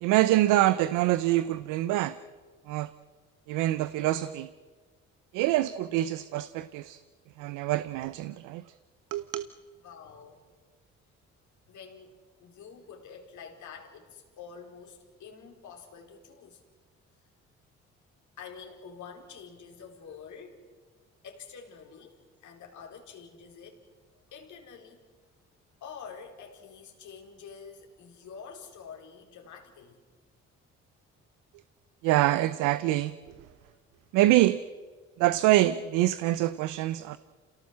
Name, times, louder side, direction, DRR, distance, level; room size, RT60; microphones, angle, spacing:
voice 1, 0.0-2.2 2.7-2.9 3.5-4.5 5.3-7.0 7.4-8.6 9.1-9.5 32.0-33.2 34.1-34.6 35.2-37.2, right 15 dB, 85° right, 0.7 m, -25 dB
voice 2, 9.8-10.4 11.7-16.6 18.4-20.7 21.2-23.8 24.3-25.0 25.8-30.0 33.6-33.8, left 6 dB, 70° left, 4.5 m, -47 dB
28.0 x 17.5 x 7.6 m
supercardioid pair, 60°, 30 cm